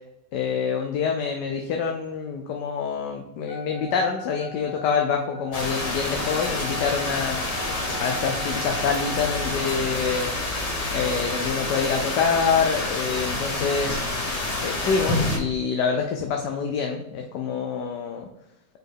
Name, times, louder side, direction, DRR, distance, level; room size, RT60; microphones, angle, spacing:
voice 1, 0.3-7.4 8.0-10.3 10.9-14.0 14.6-18.3, left 6 dB, 80° left, 3 dB, 1.3 m, -26 dB
Wind instrument woodwind instrument, 3.5-9.5, equal, 45° left, 1.9 m, -39 dB
sound 1, 5.5-15.4, left 2 dB, 30° left, 0.8 m, -28 dB
5.2 x 4.3 x 4.5 m, 0.89 s
omnidirectional pair, 1.8 m